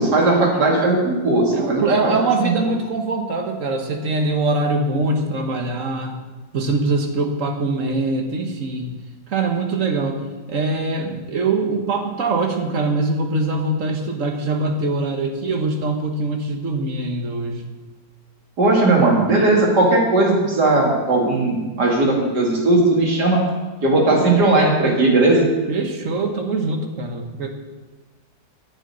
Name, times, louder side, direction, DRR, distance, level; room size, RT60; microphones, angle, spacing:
voice 1, 0.0-2.1 2.4-2.5 18.6-23.4 23.8-25.5, right 2 dB, 75° right, -1 dB, 3.1 m, -17 dB
voice 2, 1.5-6.2 6.5-8.9 9.3-10.2 10.5-17.7 24.1-24.3 25.7-27.5, right 3 dB, 50° right, 4 dB, 1.5 m, -23 dB
9.2 x 7.2 x 9.1 m, 1.3 s
omnidirectional pair, 1.8 m